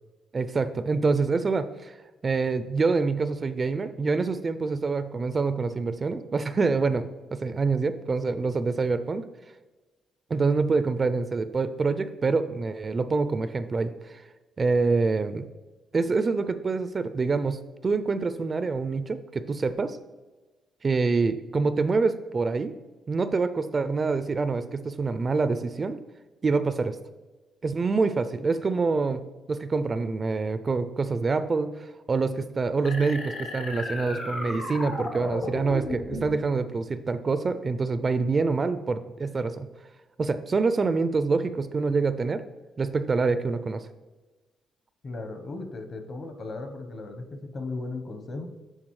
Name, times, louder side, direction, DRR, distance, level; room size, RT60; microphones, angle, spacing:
voice 1, 0.3-1.9 2.2-9.2 10.3-14.2 14.6-15.5 15.9-20.0 20.8-22.7 23.1-26.0 26.4-27.0 27.6-39.7 40.2-42.4 42.8-43.9, right 4 dB, 35° right, 12 dB, 0.3 m, -26 dB
sound 1, 32.9-36.4, left 1 dB, 85° left, 1.8 m, -34 dB
voice 2, 45.0-48.5, left 3 dB, 45° left, 7 dB, 0.9 m, -36 dB
9.9 x 3.8 x 3.2 m, 1.2 s
cardioid pair, 90°, 0 cm